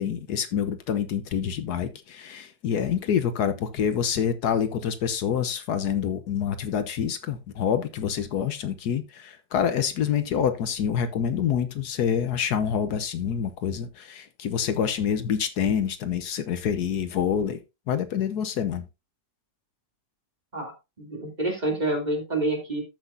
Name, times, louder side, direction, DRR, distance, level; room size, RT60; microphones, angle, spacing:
voice 1, 0.0-17.6 17.9-18.8, left 8 dB, 70° left, 1.4 m, -27 dB
voice 2, 21.0-22.8, right 2 dB, 25° right, 3.0 m, -27 dB
13.5 x 6.0 x 2.6 m
omnidirectional pair, 1.8 m